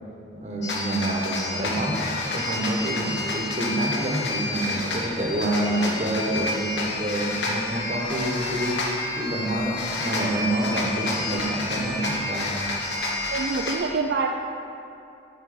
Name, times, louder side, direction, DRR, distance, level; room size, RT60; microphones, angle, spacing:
voice 1, 0.3-2.1 2.3-8.8 9.2-12.5, right 1 dB, 40° right, -1 dB, 1.1 m, -27 dB
sound 1, 0.6-13.8, left 2 dB, 70° left, 1.2 m, -29 dB
voice 2, 13.3-14.3, right 4 dB, 65° right, 3 dB, 0.4 m, -26 dB
10.0 x 4.5 x 5.1 m, 2.7 s
head